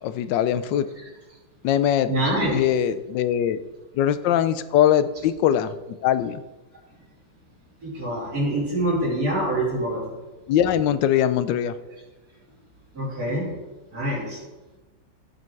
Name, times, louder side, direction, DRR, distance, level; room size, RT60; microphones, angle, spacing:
voice 1, 0.0-0.9 1.6-2.1 2.5-3.6 3.9-5.8 6.0-6.4 10.5-11.7, left 10 dB, 75° left, 12 dB, 1.2 m, -21 dB
voice 2, 2.1-2.6 7.8-10.0 12.9-13.5 13.9-14.4, right 1 dB, 50° right, -12 dB, 4.0 m, -25 dB
15.5 x 5.3 x 4.6 m, 1.1 s
omnidirectional pair, 2.1 m